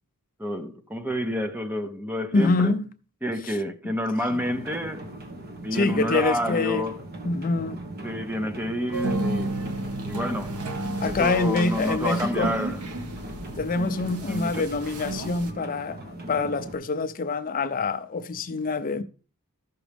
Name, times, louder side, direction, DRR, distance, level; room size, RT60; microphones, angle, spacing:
voice 1, 0.4-2.8 3.2-5.1 5.6-7.0 8.0-9.5 10.0-10.6 11.0-12.9 14.3-14.7, equal, 10° right, 0.6 m, -29 dB
voice 2, 2.3-2.9 3.4-3.6 5.7-6.8 7.2-7.8 11.0-12.5 13.6-19.0, left 3 dB, 40° left, 0.5 m, -25 dB
sound 1, 4.3-16.7, right 1 dB, 45° right, 1.4 m, -39 dB
sound 2, 8.9-15.5, right 1 dB, 85° right, 1.2 m, -33 dB
14.0 x 6.1 x 3.4 m
head